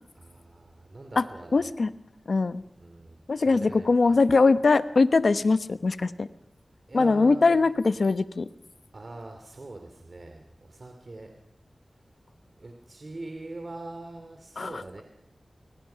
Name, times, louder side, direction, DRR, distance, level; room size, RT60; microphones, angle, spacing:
voice 1, 0.1-1.7 2.8-4.2 6.9-7.7 8.9-11.3 12.6-15.0, right 2 dB, 50° right, 4 dB, 2.9 m, -42 dB
voice 2, 1.5-1.9 2.3-2.6 3.3-6.3 6.9-8.4 14.6-14.8, left 3 dB, 70° left, 13 dB, 1.0 m, -22 dB
26.5 x 24.0 x 5.8 m, 0.77 s
wide cardioid pair, 70°, 0 cm